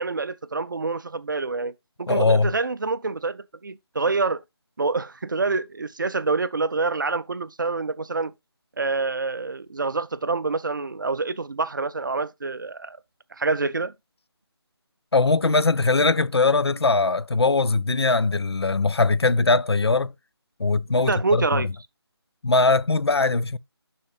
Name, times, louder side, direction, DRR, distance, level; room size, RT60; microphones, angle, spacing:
voice 1, 0.0-1.7 2.0-4.4 4.8-8.3 8.8-13.0 13.3-13.9 21.1-21.7, right 3 dB, 50° right, 0.5 m, -26 dB
voice 2, 2.1-2.5 15.1-20.1 20.6-21.6 22.4-23.6, left 3 dB, 75° left, 0.5 m, -21 dB
11.0 x 4.3 x 2.4 m
figure-of-eight pair, 155°, 14 cm